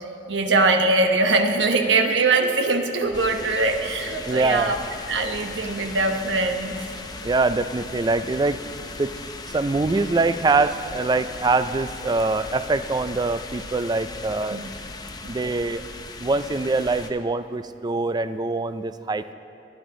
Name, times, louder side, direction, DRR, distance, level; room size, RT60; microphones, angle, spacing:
voice 1, 0.3-4.8 5.1-6.8 14.5-14.6, right 3 dB, 75° right, 4 dB, 1.1 m, -22 dB
sound 1, 3.1-17.1, left 3 dB, 20° left, 0.6 m, -38 dB
voice 2, 4.3-4.8 7.2-8.6 9.0-9.1 9.5-14.6 15.3-15.9 16.2-19.3, right 3 dB, 20° right, 12 dB, 0.3 m, -23 dB
22.0 x 9.9 x 3.8 m, 2.7 s
head